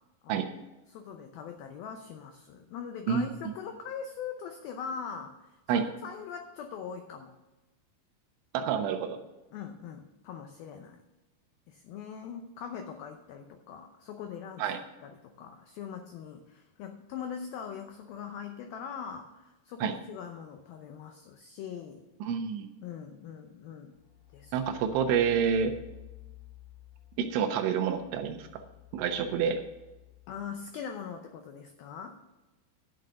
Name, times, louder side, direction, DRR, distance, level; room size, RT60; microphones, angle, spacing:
voice 1, 0.9-7.3 9.5-11.0 11.7-14.7 15.0-22.1 22.8-23.9 24.3-24.6 30.3-32.2, left 7 dB, 85° left, 6 dB, 2.1 m, -42 dB
voice 2, 8.5-9.2 14.6-14.8 19.8-19.9 22.2-22.7 24.5-25.7 27.2-28.6 28.9-29.6, right 7 dB, 85° right, 6 dB, 3.5 m, -28 dB
sound 1, 23.9-30.5, left 19 dB, 55° left, 5.0 m, -52 dB
11.5 x 6.5 x 6.7 m, 1.1 s
omnidirectional pair, 5.3 m